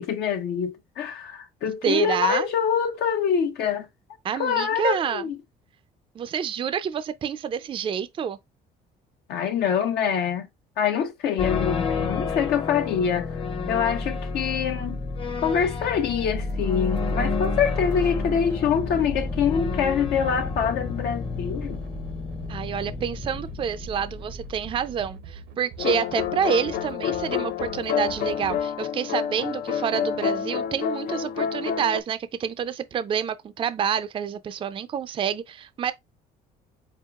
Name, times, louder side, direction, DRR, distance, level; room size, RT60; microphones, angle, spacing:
voice 1, 0.0-3.9 4.3-5.4 9.3-10.5 10.8-13.4 13.7-15.0 15.4-21.8, left 7 dB, 75° left, 0.8 m, -25 dB
voice 2, 1.8-2.5 4.2-5.2 6.2-8.4 22.5-35.9, right 8 dB, 30° right, 0.4 m, -28 dB
sound 1, 11.4-25.1, left 4 dB, 30° left, 0.8 m, -30 dB
sound 2, 16.2-28.6, right 5 dB, 75° right, 0.7 m, -44 dB
sound 3, 25.8-32.0, left 9 dB, 60° left, 0.4 m, -28 dB
4.6 x 3.8 x 2.4 m
cardioid pair, 110°, 17 cm